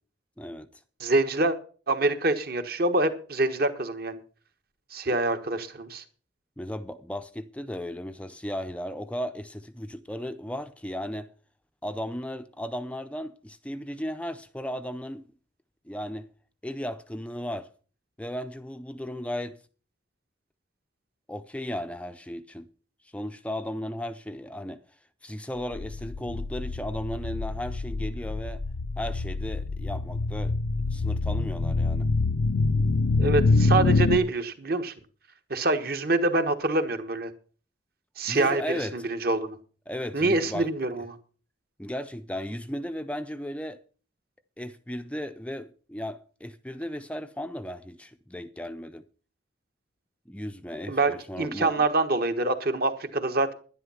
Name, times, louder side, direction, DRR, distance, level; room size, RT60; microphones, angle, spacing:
voice 1, 0.4-0.8 6.6-11.3 11.8-15.2 15.9-16.3 16.6-17.7 18.2-19.6 21.3-22.7 23.1-24.8 25.2-28.6 29.0-30.5 30.9-32.1 38.3-39.0 39.9-40.7 41.8-43.8 44.6-49.0 50.3-51.8, equal, 5° left, 0.5 m, -35 dB
voice 2, 1.0-1.6 1.9-4.2 4.9-6.0 33.2-34.9 35.5-37.3 38.2-39.6 40.1-41.2 50.9-53.5, right 2 dB, 50° right, 1.4 m, -25 dB
sound 1, 25.7-34.2, left 3 dB, 70° left, 0.5 m, -26 dB
11.0 x 10.5 x 5.6 m
head